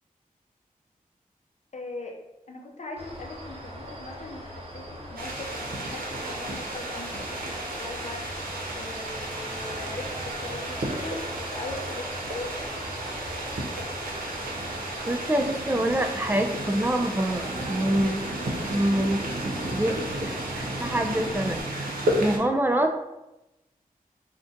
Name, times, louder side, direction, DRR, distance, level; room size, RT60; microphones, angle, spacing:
voice 1, 1.7-2.2 2.5-12.9 18.7-19.1, left 2 dB, 50° left, 1 dB, 0.6 m, -40 dB
sound 1, 3.0-21.6, equal, 40° right, 0.9 m, -40 dB
sound 2, 5.2-22.4, right 1 dB, 75° right, 0.6 m, -33 dB
voice 2, 15.1-18.3 18.7-19.2 19.7-21.9 22.2-22.9, right 1 dB, 15° right, 4 dB, 0.4 m, -26 dB
2.5 x 2.2 x 3.8 m, 0.96 s
cardioid pair, 45°, 15 cm